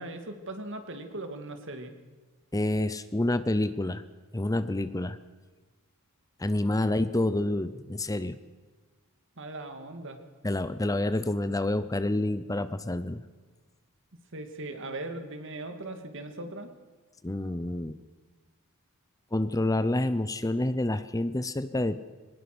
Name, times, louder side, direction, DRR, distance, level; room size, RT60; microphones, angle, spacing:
voice 1, 0.0-1.9 9.4-10.2 14.3-16.7, right 2 dB, 60° right, 7 dB, 2.4 m, -39 dB
voice 2, 2.5-4.0 4.3-5.2 6.4-8.4 10.4-13.2 17.2-18.0 19.3-22.0, left 1 dB, 15° left, 13 dB, 0.7 m, -28 dB
23.0 x 19.5 x 6.2 m, 1.3 s
head